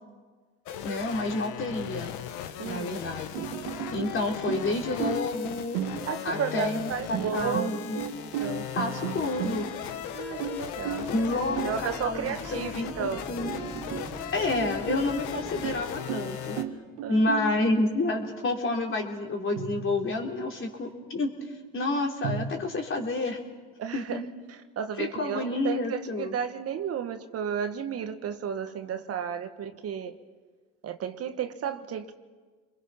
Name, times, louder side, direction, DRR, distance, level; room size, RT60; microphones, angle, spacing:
sound 1, 0.7-16.6, left 9 dB, 75° left, 1.4 m, -38 dB
voice 1, 0.8-2.1 2.6-3.4 3.9-5.8 6.2-8.0 8.7-9.7 11.1-13.5 14.3-16.6 17.1-21.3 21.7-23.4 23.9-24.2 25.0-26.3, left 2 dB, 45° left, 2 dB, 3.8 m, -29 dB
sound 2, 3.0-4.2 4.5-5.4 5.7-6.4 7.1-9.9 10.4-11.9 12.5-12.6 13.0-13.1 13.5-14.2 14.5-17.6 19.6-20.3 22.2-22.5, right 7 dB, 75° right, 1.7 m, -35 dB
voice 2, 6.1-8.7 10.1-11.1 11.6-13.2 17.0-17.3 23.8-24.2 24.7-30.2 30.8-32.2, right 8 dB, 55° right, 8 dB, 1.5 m, -33 dB
sound 3, 9.7-15.9, right 1 dB, 10° right, 1.3 m, -44 dB
29.5 x 22.0 x 5.9 m, 1.4 s
supercardioid pair, 70°, 30 cm